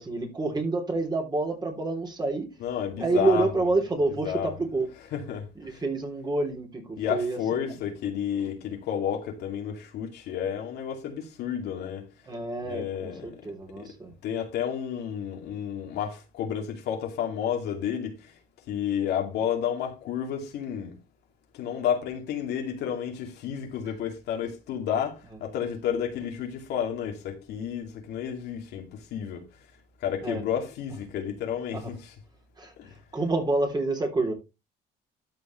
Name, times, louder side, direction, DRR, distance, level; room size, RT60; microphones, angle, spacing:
voice 1, 0.0-2.5 3.0-4.9 5.5-7.8 12.2-14.1 30.2-30.4 31.7-31.9 32.6-32.7 33.1-34.3, right 2 dB, 25° right, 3.2 m, -28 dB
voice 2, 2.6-3.5 4.2-4.5 5.1-5.8 7.0-12.1 12.6-13.4 13.8-13.9 14.2-18.3 18.7-21.0 21.5-29.5 30.0-32.1 32.8-32.9, left 8 dB, 80° left, 2.5 m, -31 dB
13.0 x 5.4 x 3.2 m
cardioid pair, 110°, 17 cm